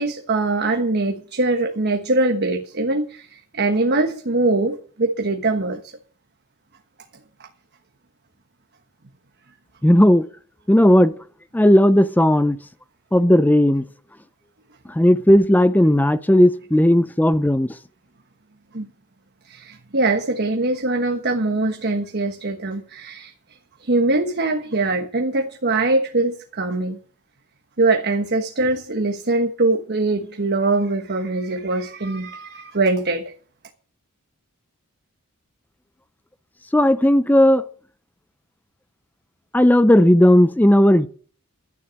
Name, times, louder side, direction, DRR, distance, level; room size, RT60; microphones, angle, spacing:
voice 1, 0.0-5.9 7.4-7.5 18.7-18.9 19.4-23.3 23.8-27.0 27.8-33.3, right 2 dB, 50° right, 1.3 m, -22 dB
voice 2, 9.8-10.3 10.7-11.1 11.5-12.6 13.1-13.8 14.9-17.8 36.7-37.6 39.5-41.1, left 1 dB, 10° left, 0.5 m, -15 dB
12.5 x 9.8 x 6.5 m
head